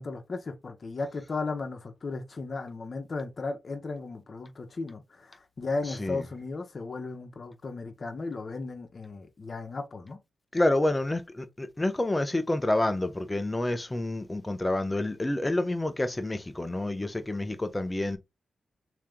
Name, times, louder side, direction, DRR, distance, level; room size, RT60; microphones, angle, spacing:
voice 1, 0.0-10.2, left 3 dB, 50° left, 1.1 m, -35 dB
voice 2, 10.5-18.2, left 1 dB, 20° left, 0.8 m, -28 dB
3.2 x 2.9 x 3.7 m
cardioid pair, 60°, 0 cm